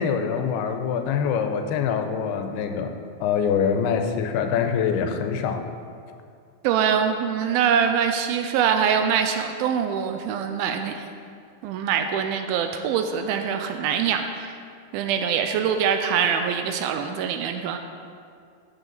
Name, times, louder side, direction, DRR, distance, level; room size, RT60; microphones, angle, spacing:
voice 1, 0.0-2.9 3.2-5.6, left 7 dB, 90° left, 6 dB, 2.7 m, -24 dB
voice 2, 6.6-11.0 11.6-14.6 14.9-17.8, right 7 dB, 80° right, 6 dB, 2.3 m, -24 dB
14.0 x 6.9 x 4.0 m, 2.3 s
omnidirectional pair, 4.5 m